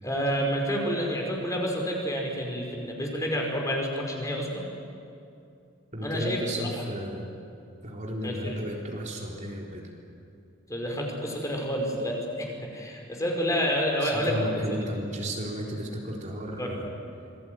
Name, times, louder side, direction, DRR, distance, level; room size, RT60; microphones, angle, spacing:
voice 1, 0.0-4.7 6.0-6.4 8.2-8.6 10.7-14.4 16.6-16.7, equal, 15° left, 0 dB, 5.1 m, -29 dB
voice 2, 5.9-7.3 7.8-9.8 14.0-16.9, equal, 40° right, -1 dB, 3.9 m, -33 dB
27.5 x 21.0 x 9.5 m, 2.5 s
head